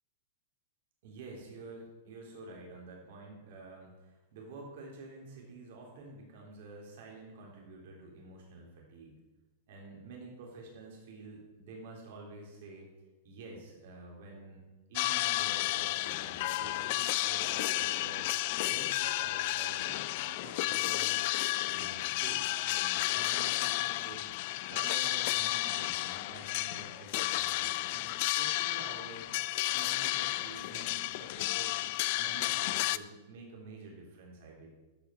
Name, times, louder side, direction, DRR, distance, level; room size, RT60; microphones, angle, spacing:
voice 1, 1.0-9.2 9.7-12.9 13.2-14.6 14.9-18.3 18.6-21.2 21.6-24.3 24.7-29.3 29.7-31.8 32.2-34.7, right 3 dB, 60° right, -1 dB, 3.6 m, -49 dB
sound 1, 15.0-33.0, left 18 dB, 50° left, 0.3 m, -32 dB
13.5 x 5.8 x 5.8 m, 1.1 s
supercardioid pair, 150°, 0 cm